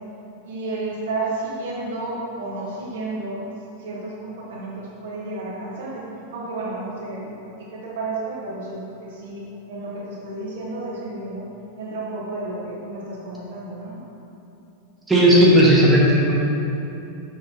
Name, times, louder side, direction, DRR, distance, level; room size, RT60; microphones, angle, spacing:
voice 1, 0.4-3.4 3.8-7.3 7.6-11.5 11.8-14.0, right 2 dB, 55° right, -5 dB, 1.1 m, -31 dB
voice 2, 15.1-16.4, equal, 10° right, -7 dB, 1.3 m, -14 dB
6.4 x 5.5 x 2.8 m, 2.9 s
figure-of-eight pair, 90°, 0 cm